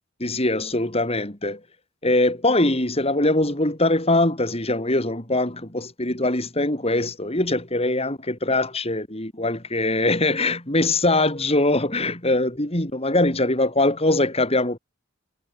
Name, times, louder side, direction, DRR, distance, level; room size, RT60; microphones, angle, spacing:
voice 1, 0.2-1.6 2.0-14.8, left 2 dB, 30° left, 4.5 m, -22 dB
head